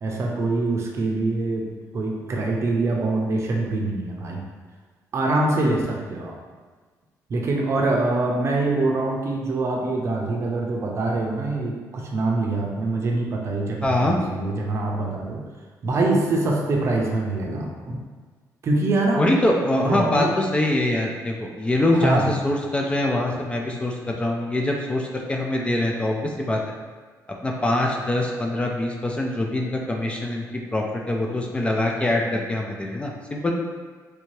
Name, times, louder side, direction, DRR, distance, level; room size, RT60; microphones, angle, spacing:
voice 1, 0.0-1.7 1.9-4.4 5.1-6.4 7.3-15.4 15.8-18.0 18.6-19.2 19.8-20.4 21.9-22.3, right 2 dB, 45° right, -1 dB, 0.6 m, -24 dB
voice 2, 13.8-14.2 19.2-26.6 27.4-33.5, left 1 dB, 15° left, 0 dB, 0.3 m, -24 dB
3.3 x 2.7 x 3.1 m, 1.5 s
cardioid pair, 120°, 6 cm